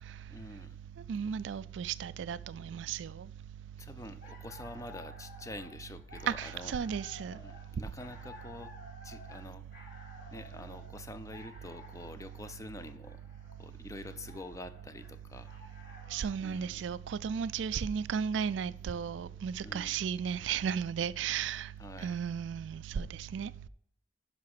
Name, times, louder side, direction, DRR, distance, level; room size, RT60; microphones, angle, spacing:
voice 1, 0.3-0.8 3.8-6.8 7.3-8.7 9.0-9.7 10.3-13.2 13.6-15.5 16.4-16.8 19.6-19.9 21.8-22.2, left 1 dB, 15° left, 0.5 m, -46 dB
voice 2, 1.1-3.3 6.3-7.4 16.1-21.7 22.0-23.5, right 7 dB, 70° right, 0.3 m, -34 dB
sound 1, 4.0-16.4, left 2 dB, 55° left, 2.6 m, -54 dB
11.5 x 5.1 x 4.8 m
head